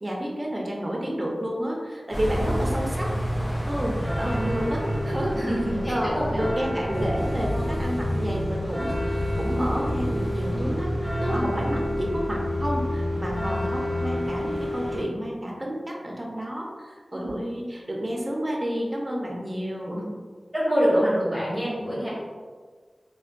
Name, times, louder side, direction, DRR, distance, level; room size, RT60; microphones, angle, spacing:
voice 1, 0.0-3.1 3.7-5.4 5.8-20.2, equal, 30° right, -2 dB, 0.6 m, -30 dB
sound 1, 2.1-15.0, equal, 20° left, 0.6 m, -28 dB
voice 2, 5.3-6.3 6.8-7.0 17.1-17.4 20.5-22.1, equal, ahead, -10 dB, 1.3 m, -25 dB
3.3 x 2.2 x 2.5 m, 1.5 s
wide cardioid pair, 70°, 0 cm